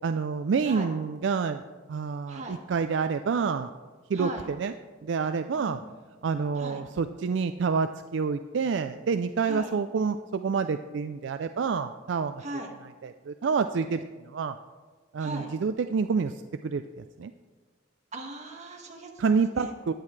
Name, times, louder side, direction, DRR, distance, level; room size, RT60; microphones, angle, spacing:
voice 1, 0.0-1.6 1.9-3.7 4.1-4.7 5.0-5.8 6.2-12.4 13.0-14.6 15.1-17.3 19.2-19.9, right 5 dB, 70° right, 9 dB, 0.4 m, -28 dB
voice 2, 4.1-4.5 5.5-5.9 6.6-6.8 9.4-9.7 12.4-12.7 15.2-15.5 18.1-19.7, right 1 dB, 40° right, 0 dB, 1.8 m, -38 dB
15.5 x 10.5 x 3.3 m, 1.4 s
head